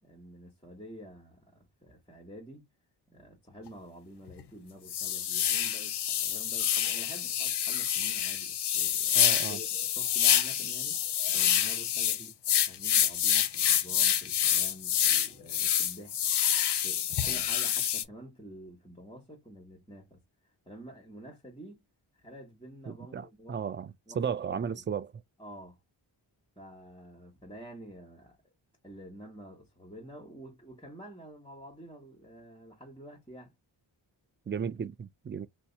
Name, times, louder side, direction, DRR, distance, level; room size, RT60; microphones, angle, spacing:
voice 1, 0.0-2.7 3.1-11.0 11.3-12.4 12.7-16.2 16.5-20.2 20.7-21.9 22.2-23.6 24.1-24.8 25.4-25.8 26.6-28.4 28.8-33.5, equal, 10° left, 1.3 m, -49 dB
sound 1, 3.7-3.8 4.3-4.4 4.9-18.0, left 9 dB, 55° left, 0.6 m, -27 dB
voice 2, 9.2-9.6 22.9-25.1 34.5-35.5, right 7 dB, 25° right, 0.3 m, -35 dB
2.7 x 2.2 x 3.9 m
cardioid pair, 50°, 48 cm